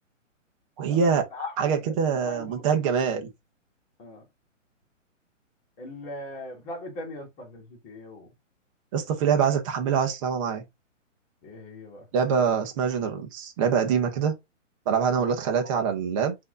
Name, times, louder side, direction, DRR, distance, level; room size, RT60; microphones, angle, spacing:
voice 1, 0.8-1.2 1.6-3.3 8.9-10.6 12.1-14.3 14.9-16.4, right 6 dB, 25° right, 0.8 m, -24 dB
voice 2, 1.3-1.9 2.2-3.0 4.0-4.2 5.8-8.3 11.4-12.1 15.1-15.8, left 2 dB, 20° left, 1.5 m, -40 dB
4.5 x 2.8 x 3.7 m
hypercardioid pair, 155°, 38 cm